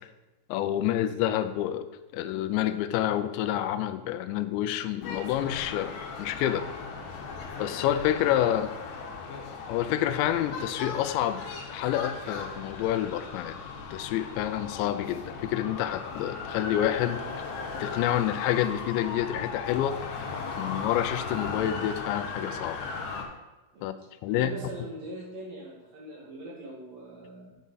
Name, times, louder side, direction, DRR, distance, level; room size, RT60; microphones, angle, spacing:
voice 1, 0.5-1.9 2.1-6.7 7.6-8.7 9.7-11.4 11.7-13.6 13.9-17.2 17.8-20.0 20.6-22.8 23.8-23.9 24.2-24.5, left 12 dB, 90° left, 11 dB, 2.9 m, -28 dB
sound 1, 5.0-23.3, left 4 dB, 75° left, 3.1 m, -37 dB
voice 2, 24.3-27.6, right 1 dB, 55° right, -5 dB, 3.6 m, -41 dB
8.3 x 7.2 x 4.0 m, 1.1 s
omnidirectional pair, 5.0 m